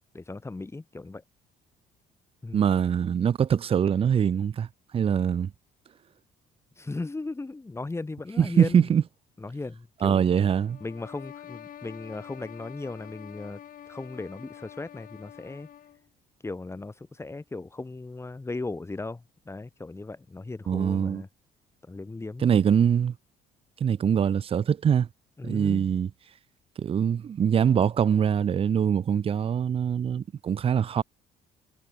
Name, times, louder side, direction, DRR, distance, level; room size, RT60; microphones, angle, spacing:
voice 1, 0.1-1.2 2.4-2.7 6.8-8.9 9.4-10.3 10.8-13.6 13.9-15.7 16.4-21.3 21.9-22.5 25.4-26.0, left 3 dB, 15° left, 3.7 m, -37 dB
voice 2, 2.5-4.7 4.9-5.5 8.4-9.0 10.0-10.8 20.7-21.2 22.4-23.1 23.8-25.1 25.4-26.1 26.8-31.0, right 8 dB, 35° right, 0.6 m, -23 dB
sound 1, 10.7-16.1, left 10 dB, 55° left, 3.1 m, -46 dB
cardioid pair, 110°, 17 cm